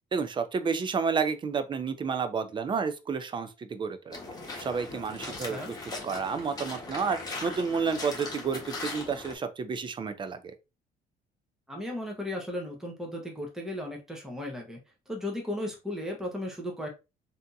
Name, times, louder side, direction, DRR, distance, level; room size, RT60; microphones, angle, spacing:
voice 1, 0.1-4.2 4.6-5.6 6.0-10.5, right 5 dB, 30° right, 0.5 m, -30 dB
sound 1, 4.1-9.4, left 3 dB, 20° left, 1.2 m, -39 dB
voice 2, 5.2-5.7 11.7-14.8 15.1-16.9, left 1 dB, 5° right, 0.9 m, -35 dB
3.4 x 2.7 x 2.6 m
cardioid pair, 110°, 17 cm